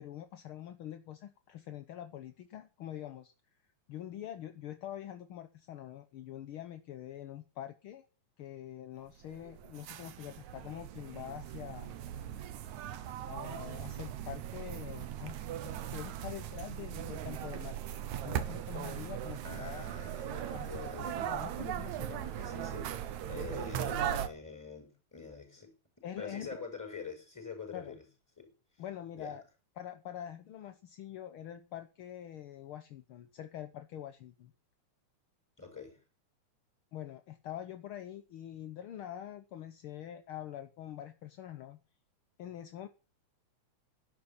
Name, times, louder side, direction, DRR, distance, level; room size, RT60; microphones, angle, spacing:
voice 1, 0.0-3.3 3.9-8.1 8.4-12.0 13.3-19.9 20.5-22.4 26.0-26.5 27.7-27.9 28.8-29.4 29.8-34.5 36.9-41.8 42.4-42.9, left 11 dB, 65° left, 1.3 m, -45 dB
sound 1, 9.2-24.3, right 11 dB, 75° right, 2.5 m, -39 dB
voice 2, 19.4-21.2 22.4-28.0 28.4-28.5 29.2-29.4 35.6-36.0, left 4 dB, 5° left, 6.1 m, -45 dB
12.0 x 11.5 x 7.2 m
omnidirectional pair, 3.4 m